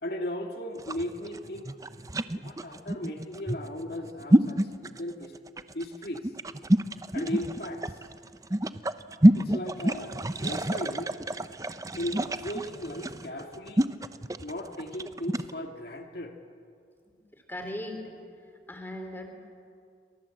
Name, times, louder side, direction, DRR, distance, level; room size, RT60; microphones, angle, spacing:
voice 1, 0.0-1.7 2.3-5.3 5.7-6.3 7.1-8.1 9.3-10.2 10.4-11.1 11.9-13.9 14.4-16.4, left 1 dB, 60° left, 3 dB, 2.1 m, -36 dB
sound 1, 0.8-15.5, right 1 dB, 20° right, 0.7 m, -27 dB
voice 2, 17.5-18.2 18.7-19.3, left 1 dB, 10° left, 5 dB, 3.2 m, -37 dB
28.5 x 25.5 x 7.8 m, 2.3 s
head